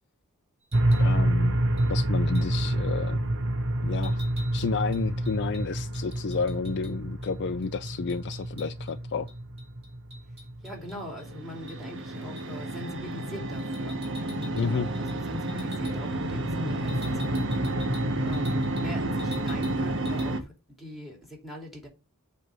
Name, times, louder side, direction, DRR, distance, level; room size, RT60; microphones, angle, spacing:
sound 1, 0.6-1.1 1.8-1.9 2.3-2.6 4.0-6.9 7.2-7.3 7.6-8.9 9.3-11.3 11.7-11.8 12.4-12.6 13.6-14.7 14.9-15.2 15.5-16.0 16.9-18.9 19.2-19.8 20.1-20.3, left 1 dB, 30° right, 4.1 m, -48 dB
sound 2, 0.7-20.4, right 1 dB, 60° right, 1.0 m, -29 dB
voice 1, 1.0-1.6 1.9-3.2 3.8-4.2 4.5-9.3 14.6-14.9, left 5 dB, 50° left, 0.4 m, -31 dB
voice 2, 10.6-17.8 18.2-21.9, left 1 dB, ahead, 2.7 m, -42 dB
7.8 x 3.4 x 6.1 m
head